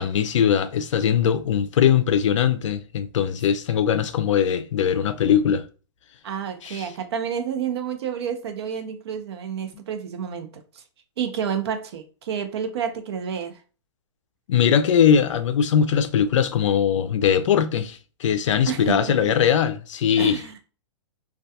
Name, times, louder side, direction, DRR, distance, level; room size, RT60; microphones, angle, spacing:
voice 1, 0.0-5.6 6.6-6.9 14.5-20.4, left 8 dB, 75° left, 0.4 m, -21 dB
voice 2, 6.2-10.6 11.2-13.5 18.7-19.3 20.2-20.5, right 8 dB, 60° right, 0.5 m, -29 dB
2.2 x 2.2 x 2.7 m
hypercardioid pair, 165°, 16 cm